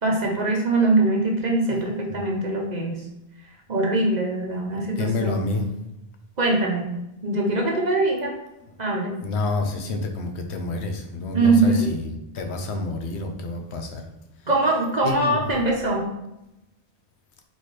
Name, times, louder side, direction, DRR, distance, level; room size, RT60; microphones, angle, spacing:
voice 1, 0.0-3.0 3.7-5.5 6.4-6.9 7.2-8.3 8.8-9.1 11.3-11.9 14.5-16.0, right 2 dB, 45° right, 0 dB, 0.9 m, -22 dB
voice 2, 4.7-5.7 8.6-8.7 9.2-14.0 15.0-15.4, left 3 dB, 75° left, 4 dB, 1.0 m, -28 dB
4.3 x 3.9 x 3.2 m, 0.90 s
omnidirectional pair, 1.1 m